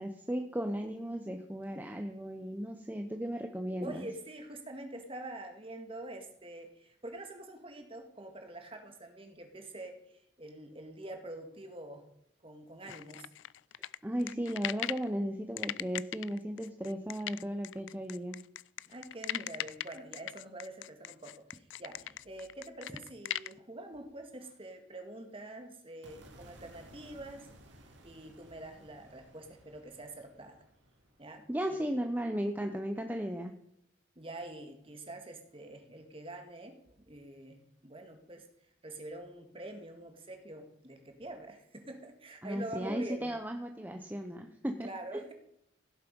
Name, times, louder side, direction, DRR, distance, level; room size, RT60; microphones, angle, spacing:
voice 1, 0.0-4.1 14.0-18.4 31.5-33.5 42.4-45.2, equal, 10° right, 5 dB, 0.8 m, -36 dB
voice 2, 3.8-12.1 12.4-13.3 18.9-27.5 28.0-30.6 31.2-31.8 34.2-38.5 38.8-43.4 44.8-45.3, right 1 dB, 30° right, 5 dB, 1.9 m, -46 dB
sound 1, 12.9-15.1 15.6-23.5, left 12 dB, 75° left, 0.4 m, -39 dB
sound 2, 26.0-32.3, right 1 dB, 70° right, 2.3 m, -58 dB
16.5 x 7.5 x 5.3 m, 0.75 s
head